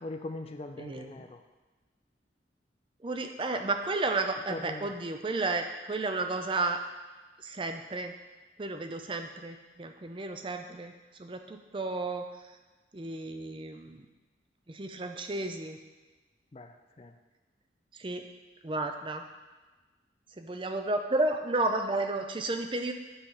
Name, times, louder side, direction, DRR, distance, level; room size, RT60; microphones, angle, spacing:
voice 1, 0.0-1.4 4.5-4.9 10.7-10.8 16.5-17.1, left 2 dB, 30° left, 7 dB, 0.4 m, -41 dB
voice 2, 0.8-1.1 3.0-6.8 7.4-8.1 8.6-10.9 11.2-12.3 12.9-14.0 14.7-15.8 18.0-18.2 18.6-19.2 20.4-22.9, right 2 dB, 25° right, 6 dB, 0.5 m, -32 dB
8.9 x 3.3 x 5.5 m, 1.2 s
head